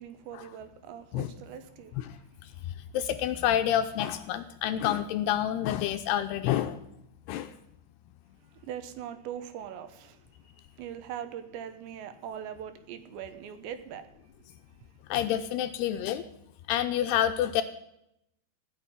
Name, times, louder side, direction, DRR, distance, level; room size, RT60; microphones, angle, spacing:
voice 1, 0.0-1.9 8.5-10.2 10.8-14.1, right 9 dB, 80° right, 3.3 m, -41 dB
voice 2, 2.0-2.5 2.9-6.8 7.3-7.5 15.1-16.2 16.7-17.6, left 11 dB, 80° left, 2.5 m, -28 dB
16.5 x 6.7 x 9.7 m
omnidirectional pair, 5.1 m